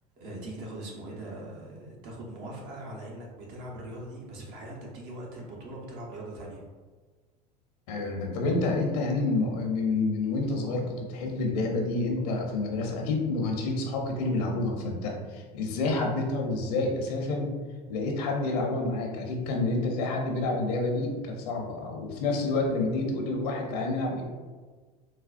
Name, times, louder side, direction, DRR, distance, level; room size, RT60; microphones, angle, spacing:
voice 1, 0.2-6.6, right 1 dB, 60° right, -2 dB, 1.0 m, -41 dB
voice 2, 7.9-17.5 17.9-24.2, left 2 dB, 75° left, 1 dB, 0.7 m, -28 dB
4.1 x 2.2 x 2.5 m, 1.4 s
hypercardioid pair, 85°, 20 cm